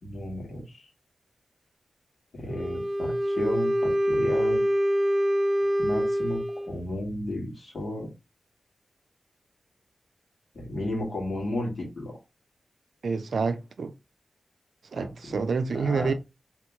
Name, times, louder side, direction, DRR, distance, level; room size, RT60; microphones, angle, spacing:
voice 1, 0.0-0.9 2.3-4.6 5.8-6.4 6.7-8.1 10.5-12.2 14.9-15.4 15.7-16.1, left 1 dB, 50° left, 2.1 m, -33 dB
Wind instrument woodwind instrument, 2.5-6.8, equal, 15° right, 1.0 m, -25 dB
voice 2, 13.0-13.9 14.9-16.1, right 4 dB, 70° right, 0.4 m, -28 dB
3.4 x 3.0 x 3.5 m
wide cardioid pair, 130°, 0 cm